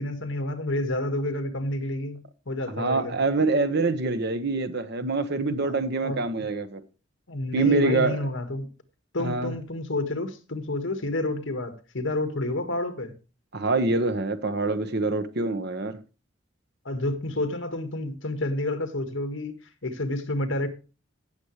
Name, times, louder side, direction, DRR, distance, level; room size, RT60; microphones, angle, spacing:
voice 1, 0.0-3.2 5.6-6.2 7.3-8.7 9.1-13.2 16.8-19.6 19.8-20.7, left 1 dB, 70° left, 1.7 m, -29 dB
voice 2, 2.7-6.8 7.5-8.3 9.2-9.5 13.5-16.0, right 3 dB, 55° right, 1.1 m, -25 dB
16.5 x 7.1 x 3.2 m
head